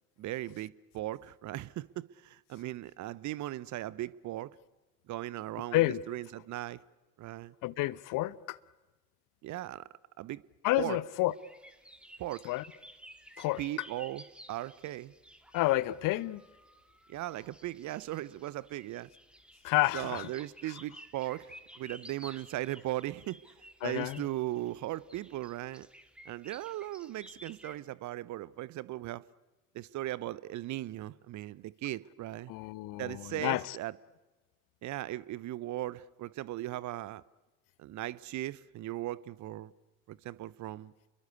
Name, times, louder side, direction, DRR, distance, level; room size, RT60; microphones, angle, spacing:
voice 1, 0.2-4.6 5.1-6.8 7.2-7.5 9.4-9.9 10.2-10.4 10.8-11.0 12.2-12.5 13.6-14.2 14.5-15.1 17.1-19.1 19.9-23.4 23.8-25.9 26.3-29.2 29.7-32.5 33.0-33.9 34.8-37.2 37.8-39.7 40.1-40.9, right 15 dB, 45° right, 0.9 m, -38 dB
voice 2, 7.6-8.6 10.6-11.3 12.4-12.6 13.4-13.6 15.5-16.4 19.6-20.3 23.8-24.2 32.5-33.8, left 18 dB, 50° left, 1.0 m, -30 dB
sound 1, 11.3-27.8, equal, ahead, 2.5 m, -54 dB
29.0 x 22.5 x 8.3 m
figure-of-eight pair, 60°, 41 cm